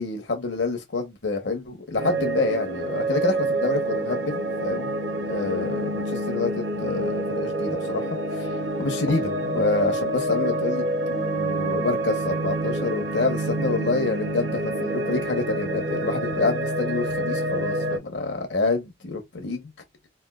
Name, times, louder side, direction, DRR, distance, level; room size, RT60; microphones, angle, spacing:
voice 1, 0.0-19.7, left 3 dB, 70° left, 1.1 m, -28 dB
sound 1, 2.0-18.0, right 1 dB, 70° right, 0.7 m, -27 dB
3.5 x 2.6 x 2.4 m
head